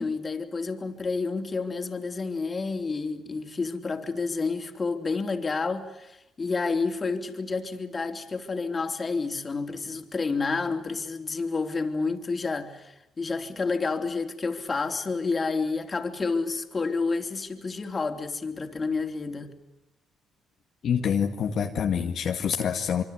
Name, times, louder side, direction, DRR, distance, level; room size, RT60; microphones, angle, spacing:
voice 1, 0.0-19.5, left 4 dB, 35° left, 3.7 m, -29 dB
voice 2, 20.8-23.0, left 7 dB, 60° left, 2.1 m, -26 dB
26.0 x 24.5 x 8.2 m
supercardioid pair, 70°, 0 cm